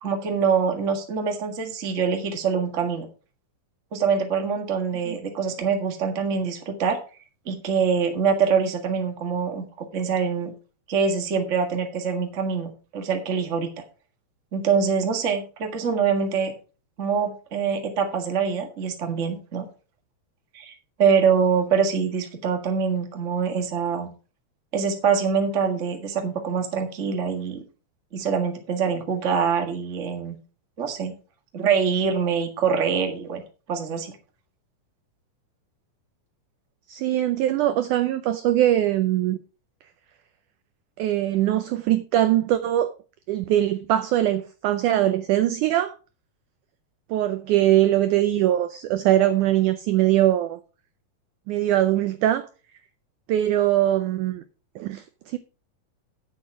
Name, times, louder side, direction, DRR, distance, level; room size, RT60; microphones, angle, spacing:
voice 1, 0.0-3.1 3.9-7.0 7.4-10.5 10.9-13.7 14.5-16.5 17.0-19.6 20.5-20.7 21.0-24.1 24.7-27.6 28.1-30.3 30.8-31.1 31.5-33.4 33.7-34.1, right 6 dB, 40° right, 1.0 m, -24 dB
voice 2, 36.9-39.4 41.0-42.9 43.3-45.9 47.1-50.6 51.5-52.5 53.3-54.4 54.8-55.4, right 13 dB, 85° right, 1.7 m, -22 dB
10.0 x 7.6 x 4.7 m
omnidirectional pair, 4.3 m